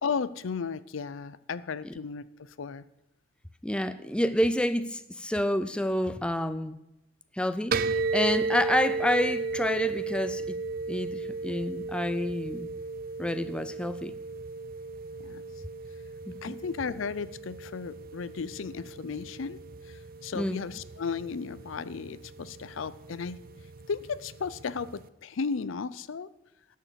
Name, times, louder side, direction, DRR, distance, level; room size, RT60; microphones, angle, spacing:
voice 1, 0.0-2.9 15.2-15.4 16.4-19.6 19.8-23.4 23.9-26.3, left 5 dB, 85° left, 0.5 m, -35 dB
voice 2, 3.6-6.8 7.3-10.6 10.9-12.7 13.2-14.1 16.3-16.6 20.3-20.7, left 1 dB, 5° left, 0.5 m, -29 dB
sound 1, 7.7-25.1, right 3 dB, 45° right, 0.5 m, -35 dB
12.0 x 6.6 x 7.4 m
head